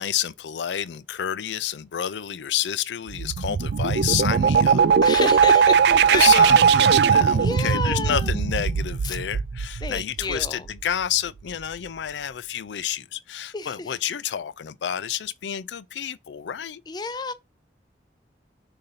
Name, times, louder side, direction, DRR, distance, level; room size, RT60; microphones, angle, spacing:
voice 1, 0.0-4.9 6.1-16.8, left 9 dB, 90° left, 0.4 m, -29 dB
sound 1, 3.1-10.7, right 6 dB, 70° right, 0.3 m, -19 dB
voice 2, 5.0-6.5 7.4-8.3 9.0-9.2 9.8-10.7 13.5-13.9 16.9-17.3, left 3 dB, 25° left, 0.4 m, -30 dB
6.7 x 2.7 x 5.6 m
head